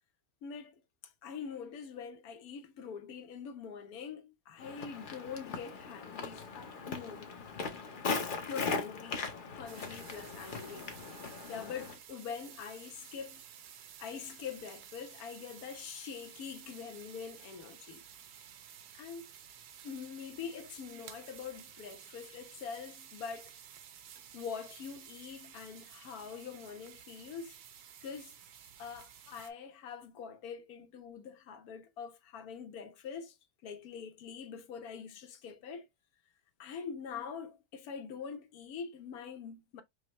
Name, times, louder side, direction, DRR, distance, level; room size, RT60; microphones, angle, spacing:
voice 1, 0.4-7.3 8.5-10.9 11.5-13.4 14.0-18.0 18.9-19.2 19.8-23.5 24.3-27.6 28.0-28.4 28.8-33.4 33.6-35.9 36.6-39.8, left 6 dB, 75° left, 1.2 m, -44 dB
Walk footsteps, 4.6-12.0, left 4 dB, 45° left, 0.7 m, -39 dB
sound 1, 9.7-29.5, right 9 dB, 80° right, 1.2 m, -53 dB
5.2 x 2.1 x 2.9 m
omnidirectional pair, 1.6 m